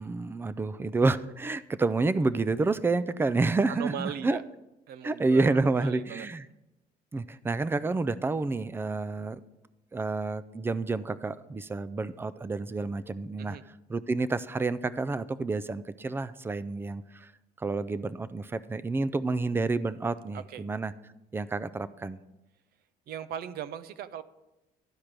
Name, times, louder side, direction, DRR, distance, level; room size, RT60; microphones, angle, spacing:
voice 1, 0.0-4.4 5.0-6.4 7.1-9.4 9.9-13.6 13.9-17.3 17.6-20.9 21.3-22.2, right 3 dB, 15° right, 16 dB, 0.4 m, -29 dB
voice 2, 3.7-4.4 4.9-6.3 13.4-13.6 20.3-20.7 23.1-24.2, right 9 dB, 65° right, 14 dB, 0.6 m, -39 dB
12.0 x 5.0 x 6.0 m, 0.98 s
cardioid pair, 110°, 17 cm